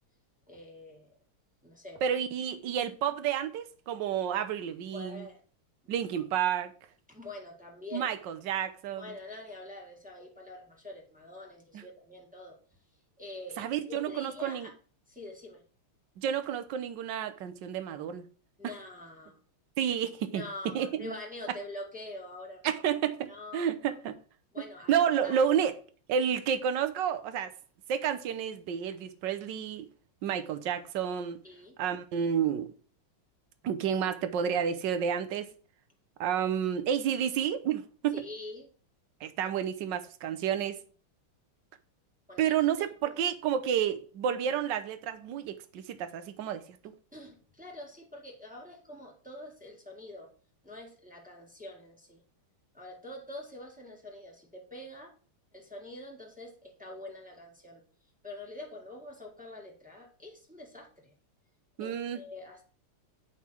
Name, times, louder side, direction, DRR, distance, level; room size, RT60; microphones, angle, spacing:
voice 1, 0.5-1.1 1.6-2.1 4.9-5.4 5.8-5.9 7.1-8.1 9.0-12.6 13.2-14.7 15.1-15.6 18.6-19.4 20.3-22.8 23.3-24.0 24.5-25.4 31.4-31.8 38.1-38.7 42.3-42.6 43.0-43.2 47.1-50.3 50.6-52.2 52.7-55.1 55.5-57.8 58.2-61.1 61.8-62.6, left 2 dB, 5° right, 1.6 m, -45 dB
voice 2, 2.0-5.3 5.9-6.7 7.9-9.1 11.7-11.8 13.6-14.7 16.2-18.3 18.6-18.7 19.8-20.4 20.7-21.1 22.6-24.2 24.9-25.8 26.1-27.5 27.9-29.9 30.2-31.4 31.8-32.7 33.6-35.5 36.2-38.2 39.2-40.8 42.4-46.6 61.8-62.2, right 8 dB, 65° right, 1.4 m, -30 dB
8.5 x 5.6 x 4.4 m
omnidirectional pair, 2.4 m